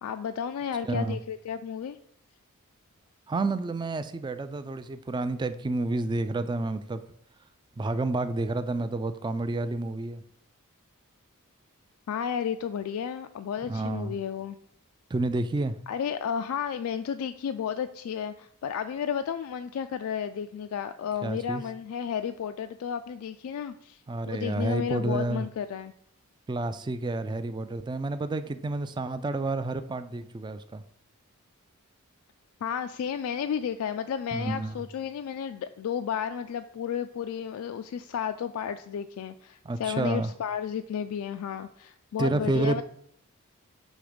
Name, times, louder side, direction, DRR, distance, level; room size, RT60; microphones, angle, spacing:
voice 1, 0.0-2.0 12.1-14.6 15.9-25.9 32.6-42.8, left 8 dB, 70° left, 9 dB, 0.3 m, -32 dB
voice 2, 0.8-1.2 3.3-7.0 7.8-10.2 13.7-14.2 15.1-15.8 21.2-21.6 24.1-25.5 26.5-30.8 34.3-34.8 39.7-40.3 42.2-42.8, right 2 dB, 20° right, 11 dB, 0.3 m, -29 dB
6.4 x 3.5 x 5.0 m, 0.66 s
head